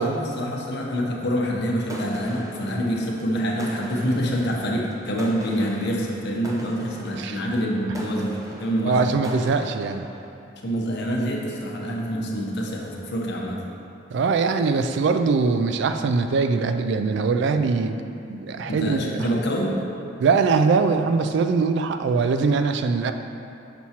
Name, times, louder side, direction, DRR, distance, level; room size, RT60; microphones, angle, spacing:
voice 1, 0.0-9.1 10.6-13.6 18.6-19.8, equal, 65° left, -1 dB, 0.8 m, -26 dB
sound 1, 1.8-10.3, equal, 20° right, 0.6 m, -41 dB
voice 2, 8.9-10.1 14.1-18.0 18.3-19.0 20.2-23.1, right 4 dB, 65° right, 8 dB, 0.3 m, -22 dB
6.0 x 5.8 x 2.8 m, 2.7 s
head